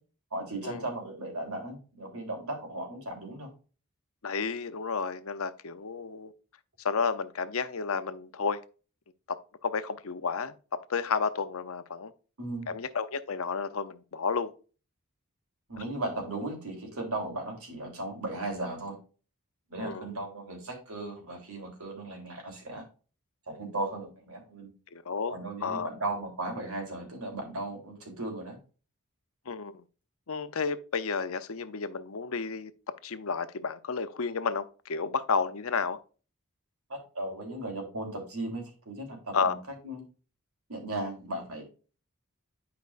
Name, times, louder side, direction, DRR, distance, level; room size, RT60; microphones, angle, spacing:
voice 1, 0.3-3.5 12.4-12.7 15.7-19.0 19.7-22.8 23.5-24.7 25.3-28.6 36.9-39.5 39.8-40.0 40.7-41.6, right 2 dB, 85° right, 3.5 m, -36 dB
voice 2, 4.2-6.3 6.8-8.6 9.3-9.4 9.6-10.5 10.9-12.1 12.7-14.5 19.8-20.1 24.9-25.9 29.5-29.7 30.3-32.7 33.0-36.0 39.3-39.6, left 5 dB, 70° left, 0.7 m, -31 dB
10.5 x 5.2 x 2.5 m
head